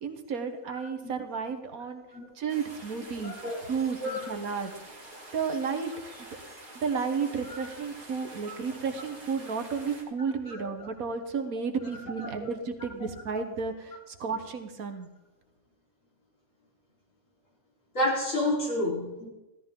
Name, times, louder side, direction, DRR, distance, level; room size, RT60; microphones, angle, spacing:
voice 1, 0.0-2.0 2.4-3.4 3.6-4.7 5.3-5.9 6.2-6.3 6.8-15.1, right 5 dB, 75° right, 7 dB, 1.7 m, -32 dB
sound 1, 2.5-10.0, right 1 dB, 35° right, 2.6 m, -47 dB
voice 2, 3.2-3.6 4.0-4.2 7.5-7.6 8.5-8.6 10.4-10.6 12.2-12.3 17.9-19.3, left 1 dB, 60° left, -5 dB, 4.7 m, -29 dB
15.5 x 13.5 x 3.7 m, 0.96 s
omnidirectional pair, 1.5 m